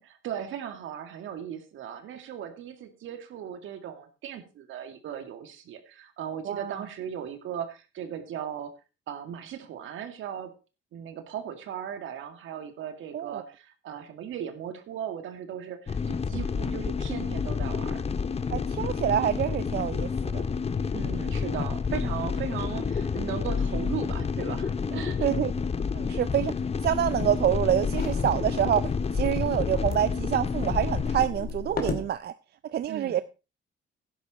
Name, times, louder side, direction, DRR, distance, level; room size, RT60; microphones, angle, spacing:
voice 1, 0.2-8.7 9.1-10.5 10.9-18.4 20.9-25.3 28.3-28.5 32.9-33.2, right 9 dB, 80° right, 2.2 m, -37 dB
voice 2, 6.5-6.8 13.1-13.4 18.5-20.4 25.2-25.5 25.9-26.5 26.8-32.3 32.7-33.2, right 10 dB, 55° right, 0.5 m, -27 dB
sound 1, 15.9-31.3, left 5 dB, 30° left, 0.8 m, -29 dB
sound 2, 26.8-32.1, left 4 dB, 50° left, 2.6 m, -35 dB
12.0 x 10.5 x 4.2 m
cardioid pair, 90°, 20 cm